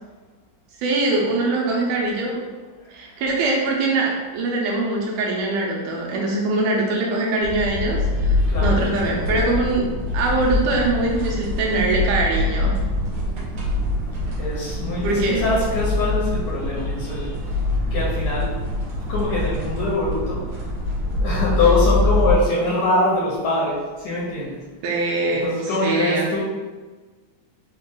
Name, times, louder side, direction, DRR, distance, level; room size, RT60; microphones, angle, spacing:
voice 1, 0.8-2.4 2.9-9.9 10.1-12.8 15.0-15.5 24.8-25.5 25.8-26.3, right 2 dB, 80° right, -2 dB, 2.2 m, -22 dB
sound 1, 7.4-22.3, left 2 dB, 60° right, 2.0 m, -24 dB
voice 2, 8.2-8.8 14.4-17.4 17.8-18.6 19.1-20.4 21.2-24.6 25.3-26.4, left 2 dB, 70° left, -7 dB, 2.0 m, -23 dB
5.7 x 2.4 x 3.7 m, 1.3 s
omnidirectional pair, 3.8 m